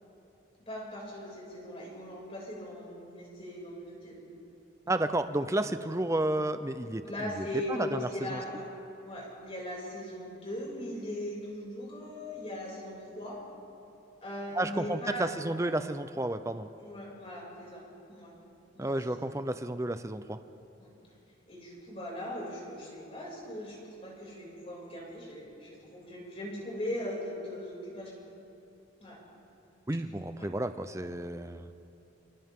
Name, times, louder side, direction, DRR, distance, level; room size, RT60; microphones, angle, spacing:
voice 1, 0.7-4.2 4.8-5.0 7.0-8.6 9.0-13.4 14.2-15.3 16.8-18.4 18.7-19.0 20.8-20.9 21.5-28.2 29.0-29.2 30.4-30.5, left 1 dB, 30° left, -4 dB, 6.6 m, -39 dB
voice 2, 4.9-8.4 14.5-16.7 18.8-20.4 29.9-31.7, right 1 dB, 15° right, 10 dB, 0.7 m, -32 dB
29.5 x 28.0 x 3.8 m, 2.8 s
head